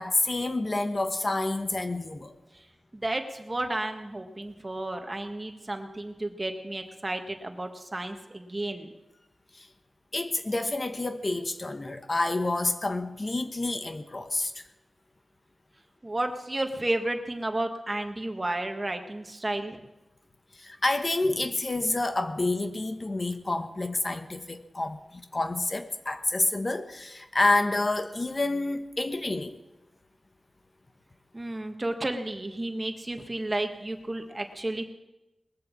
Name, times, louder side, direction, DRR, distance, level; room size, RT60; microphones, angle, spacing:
voice 1, 0.0-2.3 9.6-9.7 10.1-14.6 20.6-29.6, left 2 dB, 40° left, 8 dB, 1.1 m, -28 dB
voice 2, 2.9-8.9 16.0-19.8 31.3-34.8, right 1 dB, 30° right, 5 dB, 1.7 m, -32 dB
20.0 x 7.7 x 7.4 m, 0.99 s
cardioid pair, 55°, 0 cm